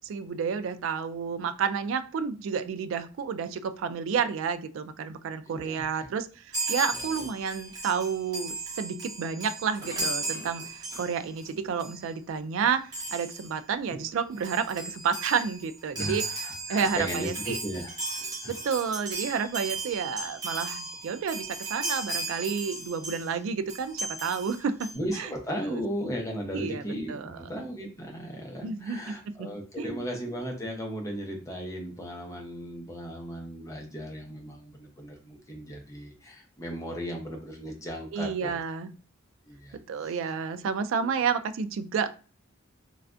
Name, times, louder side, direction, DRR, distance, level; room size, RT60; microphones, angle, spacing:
voice 1, 0.0-17.6 18.5-24.9 25.2-25.3 25.7-25.8 26.5-26.8 27.1-27.4 28.6-29.5 29.8-30.1 38.1-38.9 39.7-42.1, right 6 dB, 70° right, 11 dB, 0.3 m, -30 dB
voice 2, 5.5-6.1 6.9-7.3 13.9-14.0 15.9-18.5 24.9-38.6 39.5-40.2 41.0-41.1, equal, 15° left, 0 dB, 0.7 m, -36 dB
Chime, 6.5-11.5 11.8-12.0 12.9-13.5 14.1-14.2 14.3-23.3 23.7-24.9, right 2 dB, 20° right, 1.1 m, -36 dB
3.2 x 2.3 x 2.5 m, 0.37 s
head